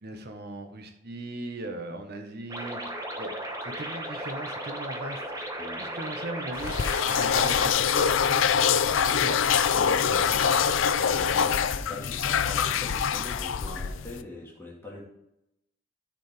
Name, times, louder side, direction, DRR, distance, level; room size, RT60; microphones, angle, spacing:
voice 1, 0.0-3.3 3.6-5.4 5.8-8.5 8.8-10.4, right 2 dB, 55° right, 6 dB, 1.2 m, -39 dB
sound 1, 2.5-7.7, right 1 dB, 20° right, 1.1 m, -36 dB
sound 2, 6.6-14.2, left 7 dB, 85° left, 0.5 m, -24 dB
voice 2, 11.0-15.0, left 2 dB, 15° left, -4 dB, 1.9 m, -42 dB
13.0 x 5.2 x 3.4 m, 0.83 s
head